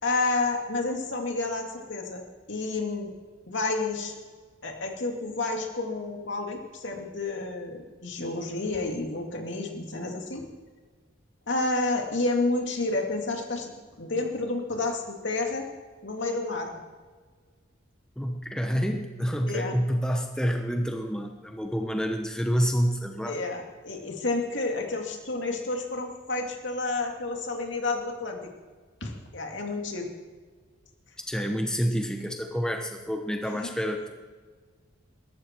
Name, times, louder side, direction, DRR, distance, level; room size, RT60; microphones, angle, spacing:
voice 1, 0.0-3.1 3.5-4.1 4.6-10.4 11.5-13.7 14.0-15.7 16.0-16.7 19.5-19.8 23.3-28.4 29.0-30.1 33.4-33.7, left 3 dB, 65° left, 2 dB, 2.6 m, -30 dB
voice 2, 18.2-23.4 31.3-34.1, equal, 5° left, 3 dB, 1.0 m, -28 dB
21.5 x 12.0 x 4.7 m, 1.5 s
head